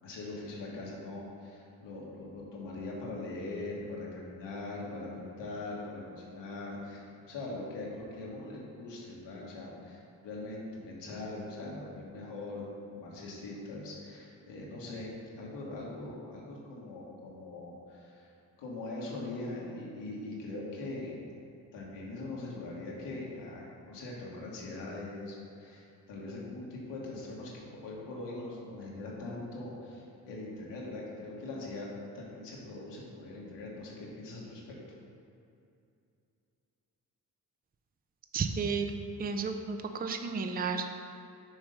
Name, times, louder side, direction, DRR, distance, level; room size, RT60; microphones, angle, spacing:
voice 1, 0.0-18.3 18.6-21.2 21.7-31.9 32.1-34.6, left 2 dB, 85° left, -4 dB, 1.5 m, -41 dB
voice 2, 38.3-38.9 39.2-41.0, right 5 dB, 25° right, 6 dB, 0.5 m, -32 dB
6.1 x 3.7 x 5.2 m, 2.6 s
cardioid pair, 60°, 42 cm